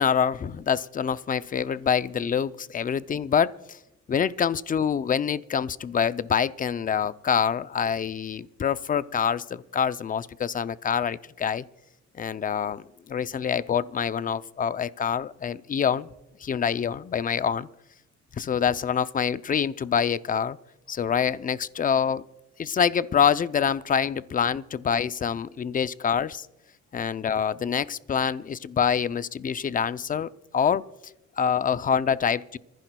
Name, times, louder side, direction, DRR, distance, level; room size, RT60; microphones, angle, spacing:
voice 1, 0.0-3.8 4.1-11.6 12.2-16.1 16.4-17.7 18.3-20.6 20.9-22.2 22.6-26.5 26.9-32.6, left 7 dB, 30° left, 15 dB, 0.5 m, -26 dB
26.5 x 15.0 x 2.3 m, 0.97 s
cardioid pair, 100°, 30 cm